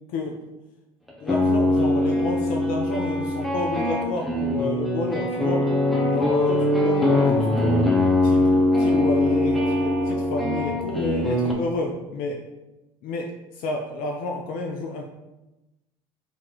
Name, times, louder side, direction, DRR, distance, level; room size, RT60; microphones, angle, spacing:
voice 1, 0.1-0.4 1.2-5.7 6.1-7.9 8.2-12.4 13.0-15.0, left 3 dB, 55° left, 1 dB, 0.5 m, -30 dB
sound 1, 1.1-11.5, left 1 dB, ahead, 0.7 m, -22 dB
2.9 x 2.9 x 3.7 m, 1.0 s
hypercardioid pair, 65°, 18 cm